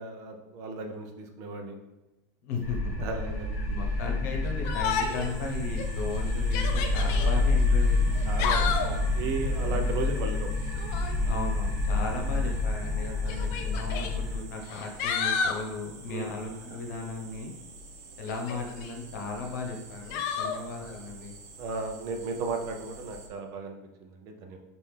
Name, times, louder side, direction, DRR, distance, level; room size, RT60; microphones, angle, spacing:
voice 1, 0.0-1.8 3.0-3.8 7.2-7.4 8.3-10.5 16.1-16.4 20.4-20.6 21.6-24.6, right 3 dB, 35° right, 4 dB, 0.5 m, -35 dB
voice 2, 2.4-3.1 3.6-8.2 9.6-9.8 11.2-17.5 18.2-21.3, left 3 dB, 80° left, 2 dB, 1.0 m, -36 dB
sound 1, 2.6-14.4, left 2 dB, 5° right, 1.3 m, -28 dB
Yell, 4.6-5.3 5.8-5.9 6.4-7.3 8.1-9.0 10.7-11.2 12.3-12.4 13.3-14.1 14.7-15.6 18.3-18.9 20.1-20.6, left 6 dB, 45° left, 0.4 m, -31 dB
sound 2, 4.9-23.3, right 3 dB, 85° right, 0.8 m, -48 dB
5.4 x 2.5 x 3.3 m, 1.0 s
supercardioid pair, 180°, 9 cm